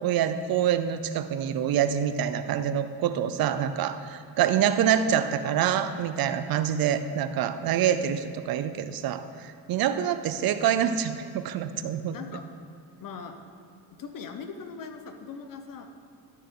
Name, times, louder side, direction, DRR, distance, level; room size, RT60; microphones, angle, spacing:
voice 1, 0.0-12.2, right 9 dB, 65° right, 11 dB, 0.6 m, -26 dB
voice 2, 4.7-5.1 11.7-12.4 13.0-13.4 14.0-15.9, left 5 dB, 55° left, 6 dB, 1.0 m, -41 dB
12.0 x 6.6 x 3.8 m, 2.2 s
cardioid pair, 100°, 40 cm